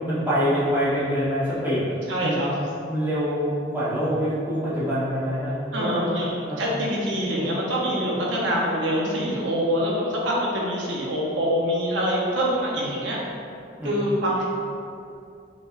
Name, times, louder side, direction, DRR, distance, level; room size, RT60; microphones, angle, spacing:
voice 1, 0.0-1.8 2.2-2.4 2.9-6.2 6.5-6.6 13.8-13.9, equal, 10° right, -11 dB, 0.9 m, -25 dB
voice 2, 2.1-2.5 5.7-13.2 13.8-14.4, equal, 85° right, -4 dB, 0.8 m, -25 dB
4.8 x 3.3 x 2.5 m, 2.5 s
head